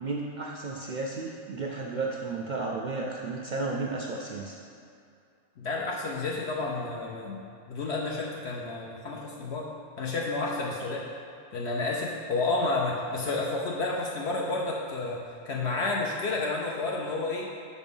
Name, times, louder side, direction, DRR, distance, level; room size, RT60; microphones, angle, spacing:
voice 1, 0.0-4.6, right 3 dB, 60° right, -1 dB, 0.4 m, -33 dB
voice 2, 5.6-7.4 7.7-9.7 10.0-11.0 11.5-17.5, left 3 dB, 65° left, -3 dB, 0.9 m, -30 dB
5.8 x 4.2 x 5.3 m, 2.4 s
omnidirectional pair, 1.2 m